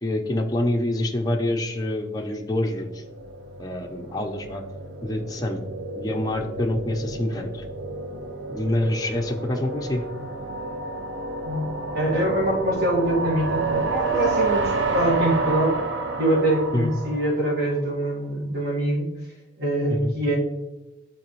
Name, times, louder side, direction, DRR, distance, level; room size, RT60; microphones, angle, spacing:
voice 1, 0.0-3.0 3.6-4.6 5.0-5.6 6.0-7.6 8.5-10.0 16.7-16.9 19.9-20.1, left 1 dB, 20° left, 2 dB, 0.5 m, -26 dB
sound 1, 2.6-17.8, right 3 dB, 80° right, 0.7 m, -30 dB
voice 2, 11.4-15.7 16.2-19.1 19.6-20.4, right 1 dB, 55° right, -3 dB, 1.6 m, -24 dB
8.3 x 4.1 x 3.1 m, 1.0 s
head